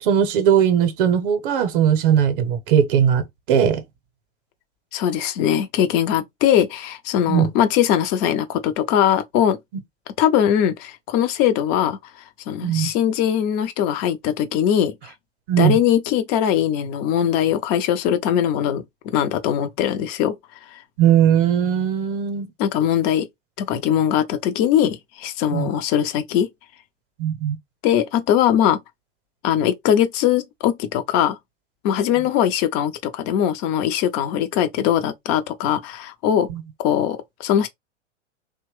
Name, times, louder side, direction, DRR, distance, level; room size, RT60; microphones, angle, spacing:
voice 1, 0.0-3.8 7.3-7.5 12.6-12.9 15.5-15.8 21.0-22.5 25.5-25.7 27.2-27.6 36.5-36.6, right 9 dB, 45° right, 0.8 m, -19 dB
voice 2, 4.9-9.6 10.2-12.0 12.5-14.9 15.6-20.3 22.6-23.3 23.6-26.5 27.8-28.8 29.4-31.4 31.8-36.5 36.8-37.7, left 10 dB, 30° left, 0.5 m, -21 dB
2.8 x 2.2 x 3.1 m
hypercardioid pair, 110°, 36 cm